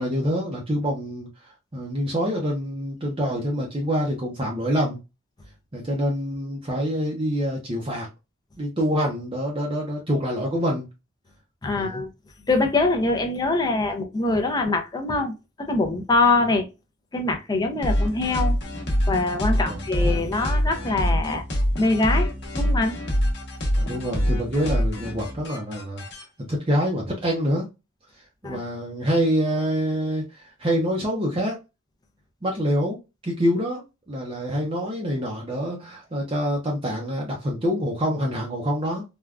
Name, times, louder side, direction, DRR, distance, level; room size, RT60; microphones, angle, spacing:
voice 1, 0.0-5.0 5.7-8.1 8.6-10.9 11.7-12.0 19.5-19.8 23.7-26.0 26.4-27.7 28.1-31.6 32.4-33.0 33.2-39.0, equal, 25° right, 0.5 m, -26 dB
voice 2, 11.6-12.1 12.5-16.7 17.1-18.6 19.1-21.4 21.8-23.0 28.4-28.6, left 3 dB, 20° left, 0.5 m, -23 dB
sound 1, 17.8-26.2, equal, 60° left, 0.9 m, -25 dB
3.5 x 2.2 x 2.3 m
head